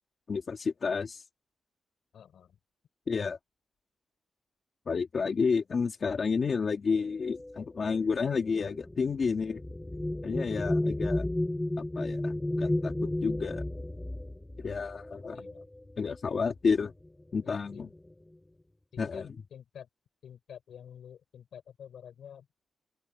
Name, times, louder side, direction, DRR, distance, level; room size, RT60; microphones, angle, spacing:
voice 1, 0.3-1.2 3.1-3.4 4.9-9.6 10.2-11.3 11.8-13.6 14.6-15.4 16.0-16.9 17.3-17.9 19.0-19.3, left 5 dB, 40° left, 2.5 m, -30 dB
voice 2, 2.1-2.6 15.3-15.7 17.4-17.9 18.9-19.2 19.5-19.9 20.2-22.5, left 8 dB, 75° left, 6.0 m, -49 dB
sound 1, 7.2-16.1 17.0-17.2 17.5-18.1, left 1 dB, 10° left, 3.7 m, -33 dB
open air
wide cardioid pair, 165°, 0 cm